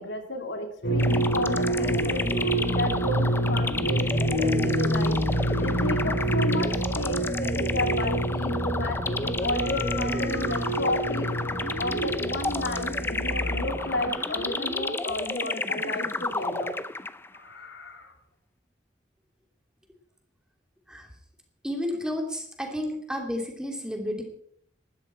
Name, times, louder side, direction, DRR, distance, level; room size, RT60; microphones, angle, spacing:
voice 1, 0.0-16.8 17.3-18.1, left 2 dB, 85° left, 4 dB, 2.7 m, -33 dB
sound 1, 0.8-14.1, right 1 dB, 65° left, 3.4 m, -27 dB
sound 2, 1.0-17.4, left 2 dB, 15° left, 0.6 m, -32 dB
voice 2, 21.6-24.2, left 1 dB, 5° right, 2 dB, 2.8 m, -31 dB
19.0 x 13.0 x 4.4 m, 0.65 s
head